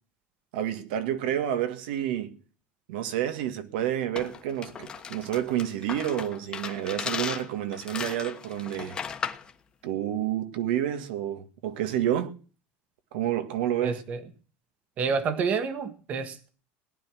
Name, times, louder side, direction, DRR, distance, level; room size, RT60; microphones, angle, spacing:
voice 1, 0.5-2.4 2.9-9.0 9.8-12.3 13.1-14.0, right 11 dB, 80° right, 1.8 m, -29 dB
sound 1, 4.1-9.5, left 6 dB, 15° left, 1.3 m, -36 dB
voice 2, 13.8-14.2 15.0-16.5, right 5 dB, 30° right, 1.4 m, -29 dB
18.0 x 10.5 x 6.2 m
cardioid pair, 175°, 5 cm